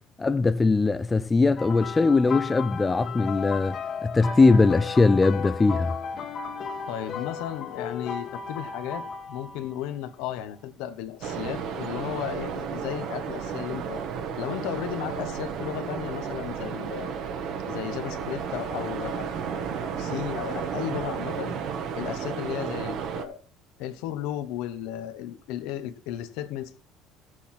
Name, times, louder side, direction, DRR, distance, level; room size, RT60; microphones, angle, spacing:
voice 1, 0.2-3.8 4.0-5.9, left 3 dB, 15° left, 0.5 m, -21 dB
sound 1, 1.6-9.8 10.7-10.9 12.8-12.9, left 5 dB, 40° left, 1.4 m, -35 dB
voice 2, 6.9-14.1 14.4-17.2 17.7-21.6 21.9-23.4 23.8-26.8, left 11 dB, 80° left, 1.3 m, -34 dB
sound 2, 11.2-23.2, right 7 dB, 55° right, 1.5 m, -33 dB
14.0 x 8.1 x 4.5 m
cardioid pair, 145°, 0 cm